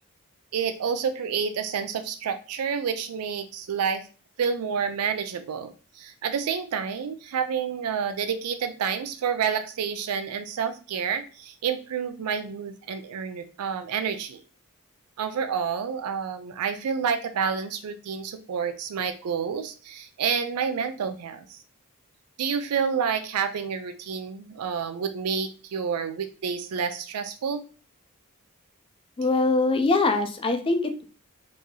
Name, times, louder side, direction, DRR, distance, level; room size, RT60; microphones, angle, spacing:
voice 1, 0.5-4.0 4.4-14.4 15.2-21.6 22.4-27.6, right 6 dB, 85° right, 8 dB, 0.4 m, -29 dB
voice 2, 29.2-31.0, left 3 dB, 25° left, 6 dB, 0.4 m, -23 dB
3.0 x 2.7 x 3.6 m, 0.38 s
head